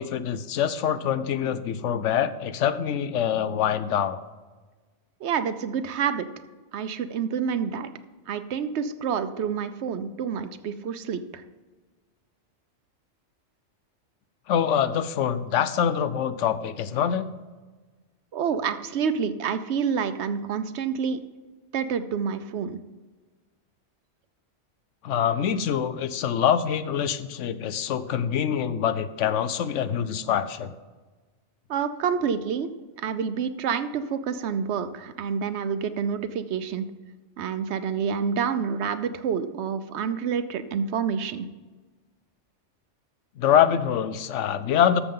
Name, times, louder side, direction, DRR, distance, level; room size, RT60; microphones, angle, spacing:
voice 1, 0.0-4.2 14.5-17.3 25.0-30.7 43.4-45.0, left 9 dB, 85° left, 13 dB, 0.9 m, -25 dB
voice 2, 5.2-6.3 6.7-7.9 8.3-11.4 18.3-21.2 21.7-22.8 31.7-32.7 33.0-36.9 37.4-41.5, right 7 dB, 70° right, 11 dB, 0.9 m, -28 dB
13.0 x 6.9 x 3.8 m, 1.3 s
omnidirectional pair, 1.2 m